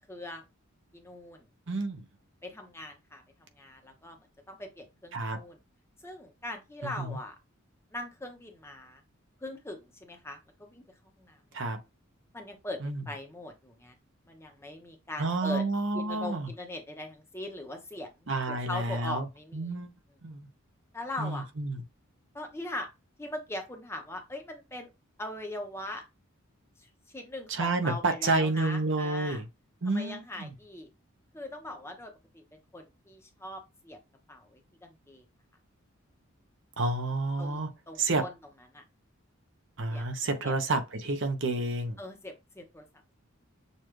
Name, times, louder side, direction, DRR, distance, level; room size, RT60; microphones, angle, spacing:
voice 1, 0.1-0.4 0.9-1.4 2.4-4.2 4.5-5.6 6.0-7.3 7.9-9.0 9.4-10.8 11.1-11.4 12.3-13.9 14.3-15.6 15.9-19.7 20.9-21.5 22.3-22.9 23.2-24.9 25.2-26.0 26.8-29.4 29.9-30.9 31.3-34.0 34.3-35.2 37.4-38.3 38.7-38.8 39.9-40.0 40.4-40.5 42.0-42.9, left 1 dB, 10° left, 0.9 m, -41 dB
voice 2, 1.7-2.1 5.1-5.4 6.8-7.2 11.5-11.8 12.8-13.0 15.2-16.5 18.3-19.3 19.5-19.9 20.2-20.5 21.2-21.8 27.5-29.5 29.8-30.5 36.8-37.7 38.0-38.3 39.8-42.0, right 2 dB, 60° right, 0.9 m, -30 dB
6.6 x 2.4 x 3.1 m
head